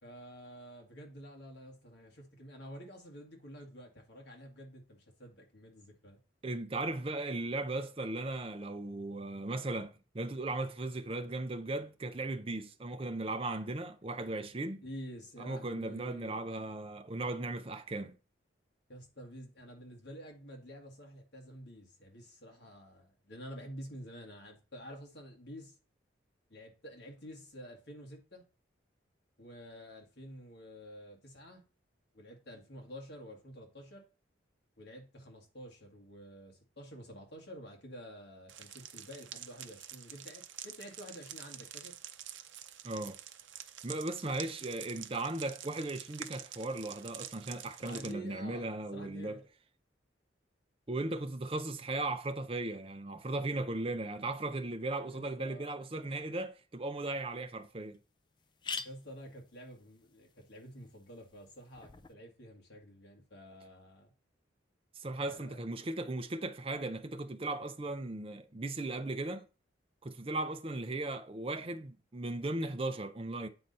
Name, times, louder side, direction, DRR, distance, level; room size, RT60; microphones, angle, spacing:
voice 1, 0.0-6.2 14.8-16.4 18.9-25.8 26.5-28.5 29.4-31.6 32.1-34.1 34.8-42.0 47.8-48.7 48.9-49.5 55.1-55.7 56.0-56.3 58.7-64.1 65.2-65.6, equal, 65° left, 1.8 m, -49 dB
voice 2, 6.4-14.8 15.4-18.2 42.8-43.2 43.8-49.4 50.9-58.0 65.0-69.5 70.0-73.5, right 2 dB, 30° right, 0.6 m, -37 dB
sound 1, 38.5-48.1, right 10 dB, 80° right, 0.6 m, -48 dB
sound 2, 57.1-57.2 57.6-57.7 57.9-58.0 58.4-62.1, left 5 dB, 25° left, 0.4 m, -46 dB
8.7 x 3.9 x 4.1 m
head